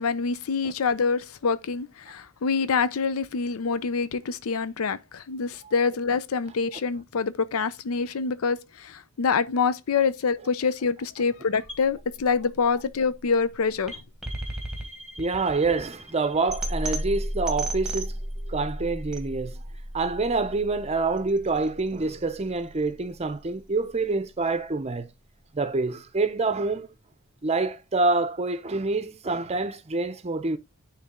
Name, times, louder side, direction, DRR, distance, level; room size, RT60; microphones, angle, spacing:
voice 1, 0.0-14.0, left 5 dB, 80° left, 0.5 m, -26 dB
sound 1, 11.7-23.7, right 1 dB, 5° right, 1.3 m, -35 dB
voice 2, 15.2-18.2 18.5-19.6 19.9-25.1 25.5-26.9 27.4-30.6, right 3 dB, 30° right, 0.6 m, -26 dB
9.7 x 3.3 x 3.6 m
head